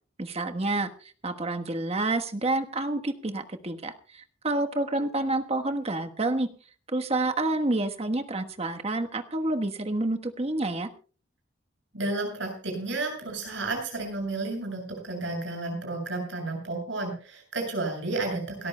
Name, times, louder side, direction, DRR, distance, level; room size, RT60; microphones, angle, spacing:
voice 1, 0.2-0.9 1.2-6.5 6.9-10.9, right 2 dB, 35° right, 7 dB, 1.3 m, -28 dB
voice 2, 11.9-18.7, right 2 dB, 70° right, 2 dB, 7.5 m, -32 dB
28.5 x 13.5 x 2.3 m, 0.38 s
head